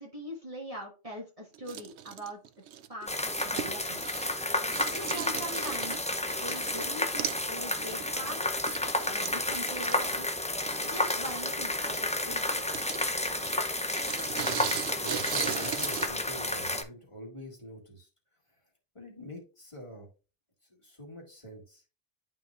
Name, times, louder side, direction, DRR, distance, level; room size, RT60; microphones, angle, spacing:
voice 1, 0.0-2.4 2.9-3.2 3.4-4.0 4.9-6.1 6.3-8.6 9.0-10.4 10.8-12.8, equal, 30° right, -2 dB, 1.5 m, -42 dB
sound 1, 1.5-4.5 4.7-6.9 7.2-7.5 7.8-16.1, right 10 dB, 80° right, 0.9 m, -39 dB
sound 2, 3.1-16.8, left 1 dB, 10° left, 0.3 m, -31 dB
voice 2, 14.4-18.1 18.9-20.1 20.7-21.8, equal, 30° left, -3 dB, 2.0 m, -45 dB
11.0 x 3.9 x 2.4 m, 0.33 s
omnidirectional pair, 1.1 m